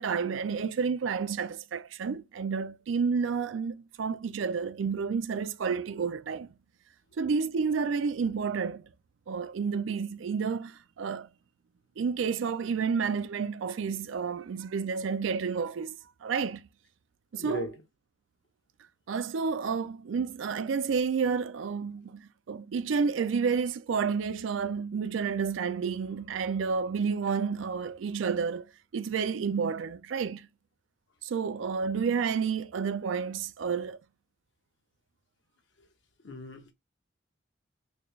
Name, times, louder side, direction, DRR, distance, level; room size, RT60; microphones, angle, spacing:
voice 1, 0.0-6.5 7.2-8.8 9.3-11.3 12.0-16.7 17.3-17.7 19.1-30.5 31.2-34.0, right 5 dB, 85° right, 0.4 m, -30 dB
voice 2, 17.4-17.7 36.2-36.7, left 1 dB, 65° left, 0.9 m, -37 dB
4.2 x 2.4 x 3.1 m
head